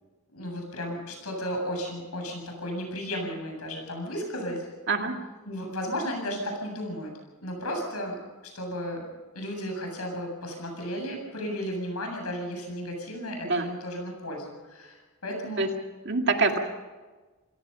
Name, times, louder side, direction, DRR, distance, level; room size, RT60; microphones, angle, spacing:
voice 1, 0.3-4.7 5.5-9.1 9.3-15.6, equal, 80° left, 2 dB, 7.9 m, -34 dB
voice 2, 4.9-5.2 13.4-13.7 15.6-15.7 16.1-16.6, right 3 dB, 50° right, 4 dB, 2.1 m, -25 dB
27.0 x 18.0 x 5.7 m, 1.3 s
head